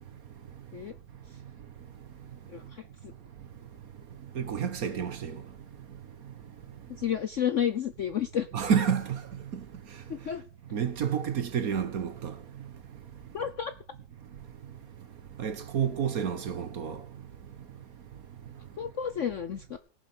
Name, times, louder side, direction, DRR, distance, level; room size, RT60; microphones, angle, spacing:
voice 1, 2.5-2.8 7.0-8.5 10.1-10.4 13.3-13.7 18.8-19.8, left 9 dB, 60° left, 0.8 m, -31 dB
voice 2, 4.4-5.4 8.5-9.2 9.5-9.6 10.7-12.3 15.4-17.0, right 7 dB, 55° right, 1.4 m, -29 dB
17.5 x 7.4 x 6.0 m
omnidirectional pair, 2.1 m